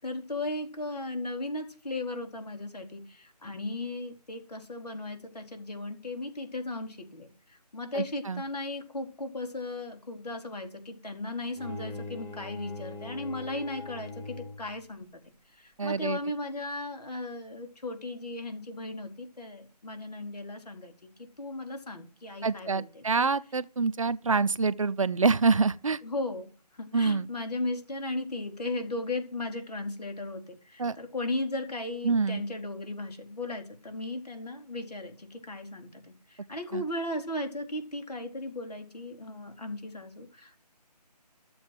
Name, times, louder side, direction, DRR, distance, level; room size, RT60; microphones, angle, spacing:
voice 1, 0.0-15.1 15.6-21.1 21.4-23.3 26.0-26.5 26.7-40.6, left 2 dB, 70° left, 4.4 m, -36 dB
voice 2, 7.9-8.4 15.8-16.2 22.4-26.0 26.9-27.3 30.8-31.0 32.0-32.4 36.7-36.8, right 4 dB, 50° right, 0.7 m, -26 dB
Bowed string instrument, 11.5-14.8, left 2 dB, 10° left, 2.1 m, -41 dB
13.5 x 7.8 x 7.8 m
figure-of-eight pair, 160°, 21 cm